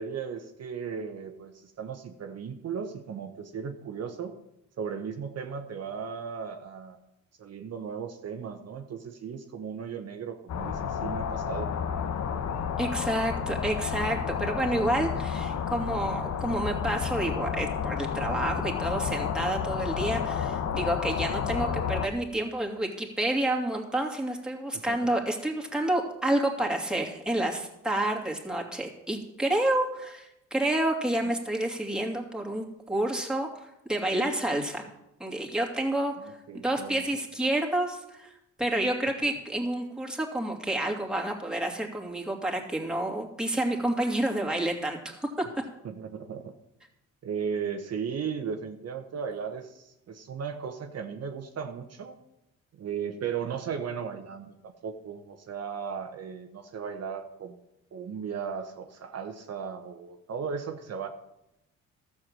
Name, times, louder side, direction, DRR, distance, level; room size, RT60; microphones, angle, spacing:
voice 1, 0.0-4.3 4.8-7.0 7.4-11.7 24.7-25.1 31.2-31.3 36.2-37.0 45.8-46.5 47.2-52.2 52.8-57.6 57.9-61.1, right 6 dB, 55° right, 5 dB, 1.1 m, -36 dB
sound 1, 10.5-22.1, left 7 dB, 65° left, 1.1 m, -31 dB
voice 2, 12.8-34.9 35.2-36.1 36.5-38.3 38.6-45.3, right 1 dB, 5° right, -1 dB, 2.6 m, -29 dB
13.0 x 7.0 x 7.5 m, 0.86 s
cardioid pair, 90°, 30 cm